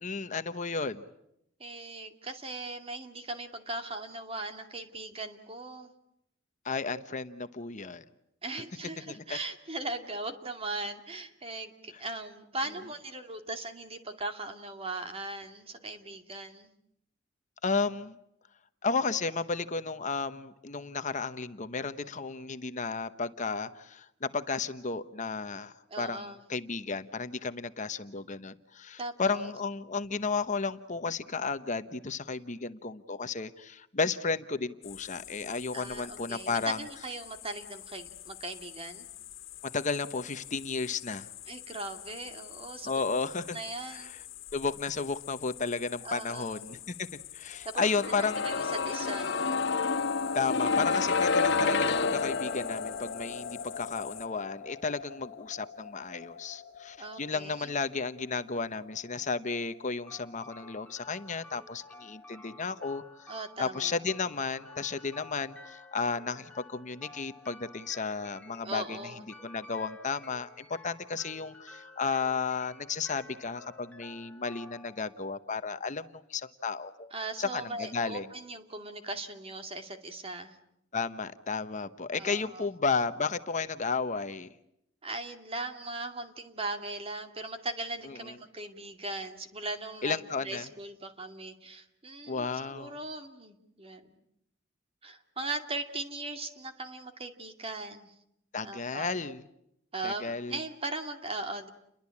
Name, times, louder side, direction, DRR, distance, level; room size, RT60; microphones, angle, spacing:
voice 1, 0.0-1.0 6.6-8.0 9.1-9.4 17.6-18.2 18.8-36.8 39.6-41.3 42.8-43.6 43.9-44.0 44.5-47.1 47.3-48.5 50.3-63.3 63.6-69.0 69.4-77.1 77.4-78.3 80.9-84.5 90.0-90.6 92.3-92.9 98.5-99.4 100.0-100.6, left 4 dB, 40° left, 11 dB, 1.0 m, -33 dB
voice 2, 1.6-5.9 8.4-16.7 25.9-26.4 29.0-29.5 35.7-39.1 41.5-43.0 43.5-44.1 46.0-46.6 47.6-49.6 57.0-57.7 63.3-64.0 68.6-69.3 77.1-80.6 82.2-82.7 85.0-94.2 95.0-98.1 98.6-99.2 99.9-101.7, right 2 dB, 30° right, 7 dB, 2.5 m, -39 dB
sound 1, 34.8-54.3, left 14 dB, 80° left, 1.8 m, -47 dB
sound 2, 47.8-59.6 59.9-60.0, left 4 dB, 60° left, 1.9 m, -31 dB
sound 3, 60.1-76.1, left 2 dB, 5° left, 2.4 m, -52 dB
30.0 x 22.5 x 8.5 m, 0.78 s
head